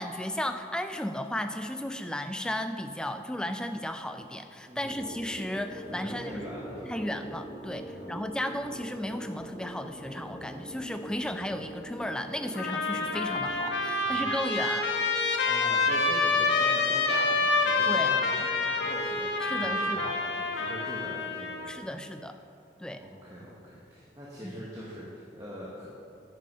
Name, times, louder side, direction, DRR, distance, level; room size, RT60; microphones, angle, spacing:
voice 1, 0.0-6.4 6.9-14.9 17.8-18.2 19.4-20.1 21.7-22.3 22.8-23.0 24.4-24.5, left 1 dB, 5° left, 7 dB, 0.4 m, -34 dB
voice 2, 4.6-5.0 5.9-7.0 7.7-8.2 14.0-14.3 15.4-21.8 23.0-25.9, equal, 20° right, -6 dB, 1.2 m, -42 dB
sound 1, 4.8-13.7, right 1 dB, 20° left, 2.1 m, -43 dB
Trumpet, 12.5-21.7, left 3 dB, 85° left, 1.1 m, -27 dB
9.7 x 6.3 x 5.5 m, 2.6 s
head